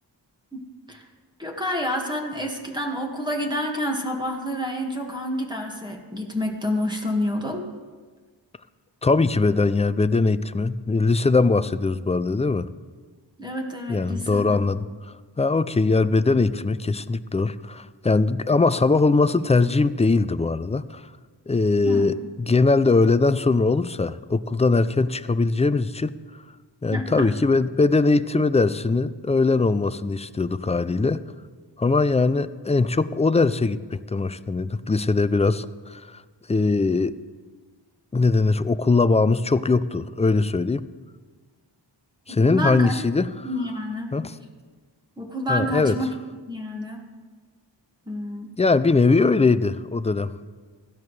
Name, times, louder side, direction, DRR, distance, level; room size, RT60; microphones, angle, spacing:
voice 1, 1.4-7.7 13.4-14.6 21.8-22.1 26.9-27.3 42.4-43.0 43.4-44.1 45.2-46.1 46.5-47.0 48.1-48.5, left 1 dB, 10° right, 1 dB, 1.8 m, -28 dB
voice 2, 9.0-12.7 13.9-14.8 15.4-21.0 21.5-26.1 26.8-31.2 31.8-36.2 36.5-37.2 38.1-40.8 42.3-43.3 44.1-44.3 45.5-45.9 48.6-50.4, left 3 dB, 15° left, 14 dB, 0.3 m, -21 dB
16.0 x 12.5 x 3.3 m, 1.4 s
wide cardioid pair, 60°, 45 cm